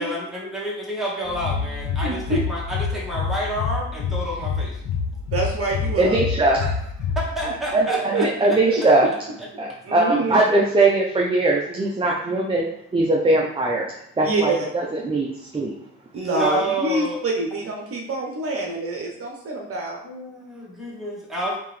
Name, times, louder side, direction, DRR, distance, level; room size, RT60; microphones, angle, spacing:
voice 1, 0.0-4.8 6.6-6.7 7.1-8.6 16.1-17.2 20.0-21.6, right 1 dB, ahead, -6 dB, 1.5 m, -29 dB
sound 1, 1.2-7.7, left 6 dB, 50° left, 0.4 m, -27 dB
voice 2, 2.0-2.4 5.3-6.2 7.9-8.3 9.8-10.4 14.2-14.7 16.1-20.0, right 2 dB, 50° right, -1 dB, 0.8 m, -26 dB
voice 3, 6.0-6.6 7.7-9.1 9.6-13.9 14.2-15.3 15.5-15.7, right 2 dB, 20° right, -2 dB, 0.5 m, -20 dB
3.5 x 2.9 x 3.2 m, 0.71 s
cardioid pair, 90°, 30 cm